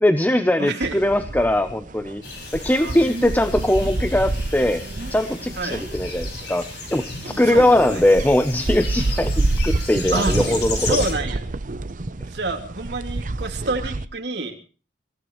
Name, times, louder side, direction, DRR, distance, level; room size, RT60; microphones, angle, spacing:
voice 1, 0.0-2.2 2.5-4.8 5.1-11.0, left 1 dB, 10° left, 10 dB, 0.7 m, -20 dB
voice 2, 0.6-1.0 2.8-3.0 5.6-5.8 7.4-8.0 10.1-10.3 10.7-11.4 12.3-14.5, right 2 dB, 80° right, 2 dB, 3.0 m, -28 dB
sound 1, 0.8-14.0, right 2 dB, 45° right, 0.7 m, -28 dB
sound 2, 2.2-11.1, left 3 dB, 65° left, 6.0 m, -34 dB
25.5 x 15.5 x 3.1 m, 0.36 s
head